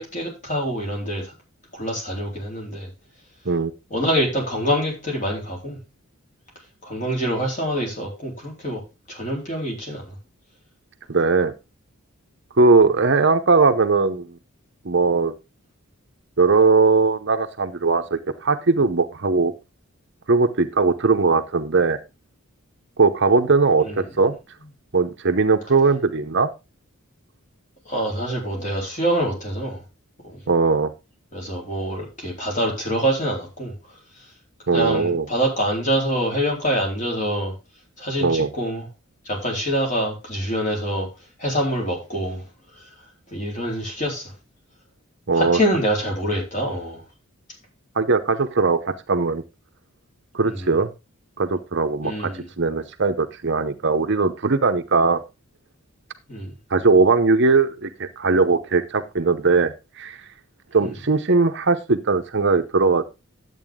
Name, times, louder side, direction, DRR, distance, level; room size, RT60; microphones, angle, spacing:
voice 1, 0.0-1.3 1.7-2.9 3.9-5.8 6.8-8.8 9.1-10.1 23.8-24.0 27.9-29.8 30.3-30.4 31.3-33.7 34.7-37.5 38.0-38.9 39.3-41.1 41.4-42.4 43.3-44.3 45.3-47.0 50.4-50.7 52.0-52.5 56.3-56.5 60.8-60.9, equal, 35° left, -1 dB, 4.0 m, -25 dB
voice 2, 11.1-11.5 12.6-14.4 14.8-15.3 16.4-19.5 20.3-22.0 23.0-24.3 24.9-26.5 30.5-30.9 34.7-35.3 38.2-38.5 45.3-45.6 48.0-49.4 50.3-50.9 51.4-52.3 52.6-55.2 56.7-60.2 60.7-63.0, right 4 dB, 50° right, 8 dB, 0.8 m, -19 dB
11.0 x 8.1 x 3.6 m, 0.26 s
head